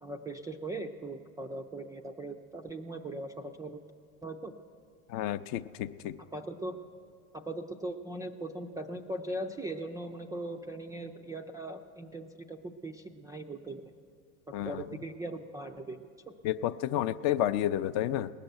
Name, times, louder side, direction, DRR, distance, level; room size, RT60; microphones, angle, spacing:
voice 1, 0.0-3.8 4.2-4.5 6.2-6.8 7.3-13.9 14.5-16.1, right 1 dB, 10° right, 4 dB, 0.3 m, -39 dB
voice 2, 5.1-6.1 14.5-14.8 16.4-18.3, left 12 dB, 45° left, 13 dB, 0.5 m, -30 dB
18.5 x 6.7 x 8.9 m, 2.2 s
hypercardioid pair, 105°, 41 cm